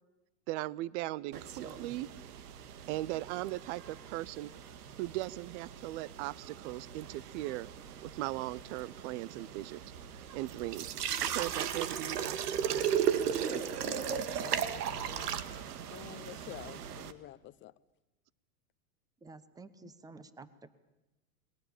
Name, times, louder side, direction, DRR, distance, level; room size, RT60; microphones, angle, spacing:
voice 1, 0.5-2.1 2.9-4.5 5.0-7.7 8.0-9.8 10.3-13.0, right 17 dB, 50° right, 23 dB, 0.8 m, -38 dB
sound 1, 1.3-17.1, right 9 dB, 80° right, 1.8 m, -37 dB
voice 2, 13.2-15.6 15.9-17.7 19.8-19.9, left 14 dB, 25° left, 16 dB, 0.8 m, -49 dB
voice 3, 19.2-20.7, right 3 dB, 10° right, 15 dB, 1.1 m, -51 dB
28.5 x 21.0 x 7.2 m, 0.99 s
hypercardioid pair, 125°, 46 cm